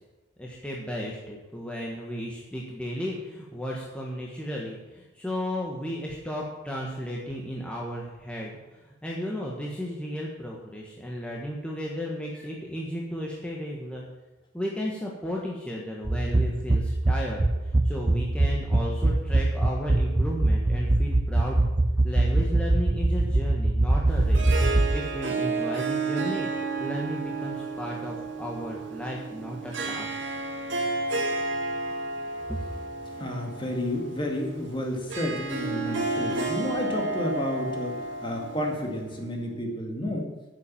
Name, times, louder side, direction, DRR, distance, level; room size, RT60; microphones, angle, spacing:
voice 1, 0.4-14.0 14.5-21.7 22.0-24.5 24.9-30.2 32.5-32.6, equal, 5° left, -3 dB, 1.5 m, -34 dB
sound 1, 16.0-25.0, right 2 dB, 20° right, 0.5 m, -23 dB
Harp, 24.1-39.3, right 3 dB, 60° right, 2.0 m, -32 dB
voice 2, 33.2-38.0 38.2-40.3, left 1 dB, 25° left, 1 dB, 2.1 m, -31 dB
9.7 x 7.4 x 8.6 m, 1.2 s
head